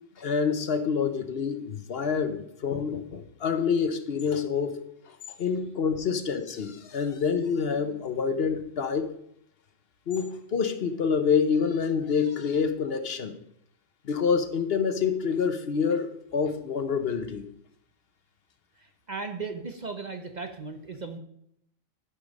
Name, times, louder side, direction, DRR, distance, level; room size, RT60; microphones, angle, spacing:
voice 1, 0.2-4.8 5.1-9.1 10.1-13.4 14.0-17.5, left 6 dB, 55° left, 9 dB, 1.0 m, -27 dB
voice 2, 18.8-21.2, right 4 dB, 40° right, 6 dB, 0.8 m, -37 dB
11.5 x 5.4 x 5.1 m, 0.73 s
omnidirectional pair, 1.3 m